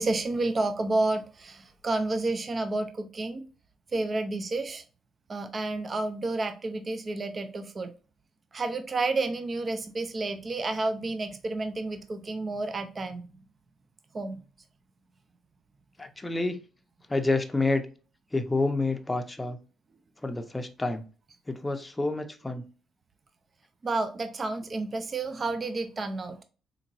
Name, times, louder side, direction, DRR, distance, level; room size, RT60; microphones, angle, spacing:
voice 1, 0.0-3.4 3.9-4.8 5.3-7.9 8.5-13.2 14.1-14.4 23.8-26.4, right 2 dB, 35° right, 8 dB, 0.5 m, -30 dB
voice 2, 16.0-16.6 17.1-17.8 18.3-19.6 20.2-21.0 21.5-22.6, left 2 dB, 15° left, 6 dB, 0.6 m, -28 dB
3.8 x 2.8 x 2.6 m, 0.36 s
cardioid pair, 90°, 0 cm